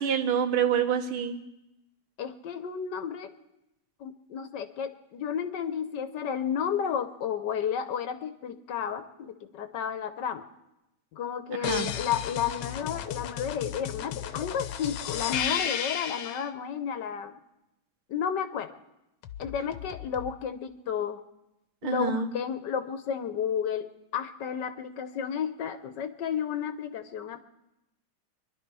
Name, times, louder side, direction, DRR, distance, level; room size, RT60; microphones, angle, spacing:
voice 1, 0.0-1.4 11.6-11.9 21.8-22.3, right 7 dB, 85° right, 7 dB, 2.0 m, -27 dB
voice 2, 2.2-3.3 4.0-10.4 11.1-17.3 18.1-18.7 19.4-21.2 21.8-27.4, left 8 dB, 65° left, 10 dB, 1.3 m, -32 dB
sound 1, 11.6-16.5 19.2-20.3, left 9 dB, 90° left, 1.6 m, -34 dB
24.0 x 11.5 x 4.7 m, 0.89 s
omnidirectional pair, 2.3 m